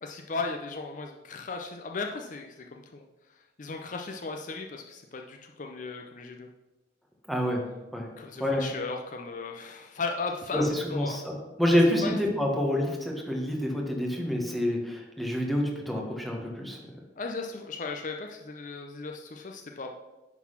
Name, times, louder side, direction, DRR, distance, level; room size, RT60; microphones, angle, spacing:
voice 1, 0.0-3.0 3.6-6.5 8.2-11.3 12.0-12.2 17.2-19.9, left 4 dB, 45° left, 2 dB, 0.6 m, -36 dB
voice 2, 7.3-7.6 7.9-8.0 8.4-8.7 10.5-11.3 11.6-16.8, equal, ahead, -1 dB, 1.5 m, -27 dB
10.5 x 4.1 x 5.8 m, 1.1 s
head